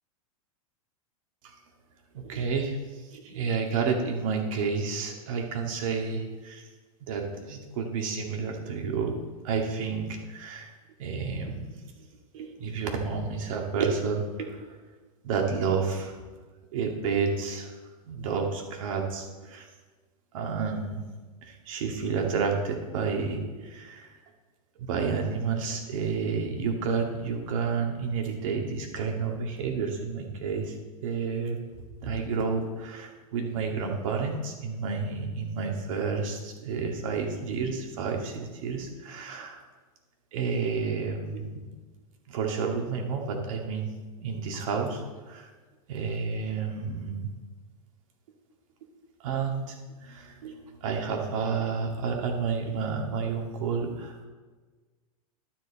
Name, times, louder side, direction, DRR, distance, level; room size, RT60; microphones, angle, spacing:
voice 1, 2.1-2.8 3.1-6.6 7.1-9.1 9.4-10.7 11.0-11.7 12.3-14.7 15.2-16.1 16.7-17.7 18.1-19.7 20.3-21.0 21.4-24.1 24.9-30.8 31.0-31.6 32.0-39.6 40.3-41.6 42.3-43.9 44.2-45.5 45.9-47.3 49.2-49.8 50.0-54.2, right 5 dB, 65° right, 2 dB, 2.1 m, -30 dB
12.0 x 7.8 x 4.2 m, 1.3 s
hypercardioid pair, 100°, 19 cm